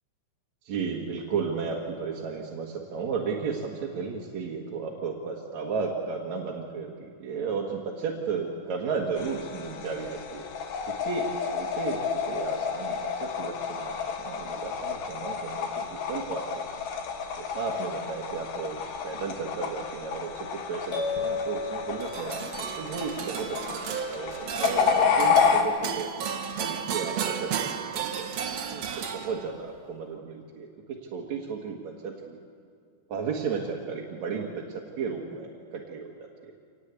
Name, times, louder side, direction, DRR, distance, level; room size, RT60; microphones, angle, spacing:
voice 1, 0.6-10.4 10.8-12.0 12.3-16.6 17.4-26.1 26.6-32.4 33.1-36.5, right 5 dB, 55° right, -2 dB, 2.4 m, -34 dB
sound 1, 9.2-25.6, left 6 dB, 60° left, 2.8 m, -30 dB
sound 2, 20.9-22.8, left 4 dB, 40° left, 5.5 m, -33 dB
sound 3, 22.0-29.7, right 7 dB, 70° right, 1.5 m, -33 dB
25.5 x 19.0 x 8.3 m, 2.2 s
omnidirectional pair, 5.0 m